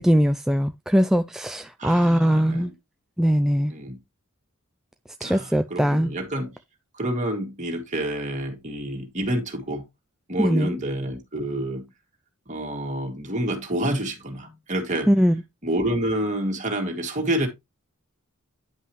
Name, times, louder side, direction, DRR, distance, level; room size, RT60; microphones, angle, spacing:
voice 1, 0.0-2.7 3.2-3.7 5.2-6.1 10.4-10.7 15.1-15.3, equal, ahead, 0.3 m, -21 dB
voice 2, 1.8-2.7 3.7-4.0 5.2-6.6 6.9-9.8 10.3-11.9 12.5-15.3 15.6-17.5, right 1 dB, 35° right, 2.2 m, -28 dB
9.9 x 5.5 x 3.1 m
head